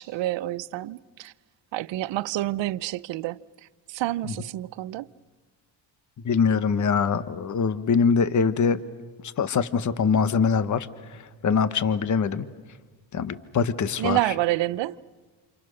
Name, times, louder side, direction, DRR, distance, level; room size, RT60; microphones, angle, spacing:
voice 1, 0.0-1.3 1.7-3.4 3.9-5.1 14.0-15.0, right 16 dB, 65° right, 0.7 m, -28 dB
voice 2, 6.2-8.8 9.4-12.4 13.1-14.2, left 5 dB, 40° left, 1.2 m, -23 dB
29.0 x 28.0 x 6.4 m
cardioid pair, 115°, 47 cm